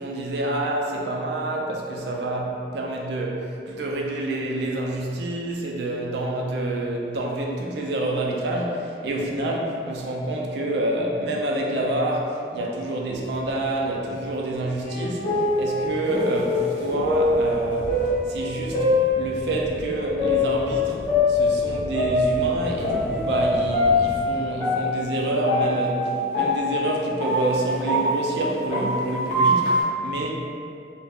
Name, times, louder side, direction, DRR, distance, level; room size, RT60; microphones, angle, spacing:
voice 1, 0.0-18.9 19.2-21.0 21.3-30.4, right 1 dB, 65° right, -1 dB, 0.4 m, -27 dB
sound 1, 13.6-24.3, equal, 70° left, 0.6 m, -40 dB
sound 2, 14.8-19.7 20.2-23.4 23.7-29.8, left 2 dB, 40° left, 0.8 m, -23 dB
2.4 x 2.1 x 3.4 m, 2.5 s
head